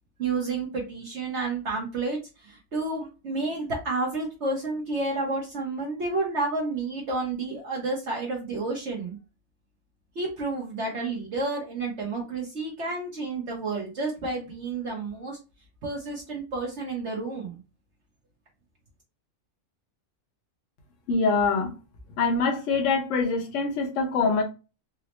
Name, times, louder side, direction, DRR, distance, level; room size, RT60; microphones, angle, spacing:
voice 1, 0.2-9.2 10.2-15.4 15.8-17.6, right 3 dB, 55° right, 1.0 m, -30 dB
voice 2, 21.1-21.7 22.2-24.4, left 4 dB, 60° left, 1.2 m, -24 dB
4.1 x 2.0 x 2.9 m
omnidirectional pair, 1.6 m